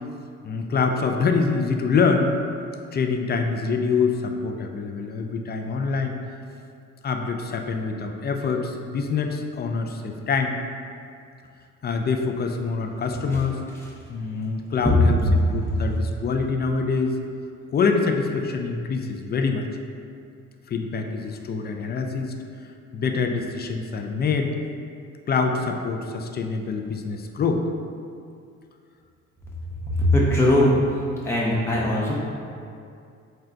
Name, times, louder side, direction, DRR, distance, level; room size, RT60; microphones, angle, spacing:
voice 1, 0.4-2.3 2.9-6.2 7.0-10.6 11.8-13.6 14.1-17.1 17.7-19.7 20.7-22.3 22.9-24.5 25.3-27.7, left 4 dB, 35° left, 4 dB, 0.4 m, -25 dB
voice 2, 30.0-30.7 31.2-32.1, left 1 dB, 10° left, -5 dB, 0.7 m, -20 dB
3.8 x 2.2 x 4.4 m, 2.4 s
cardioid pair, 90°, 30 cm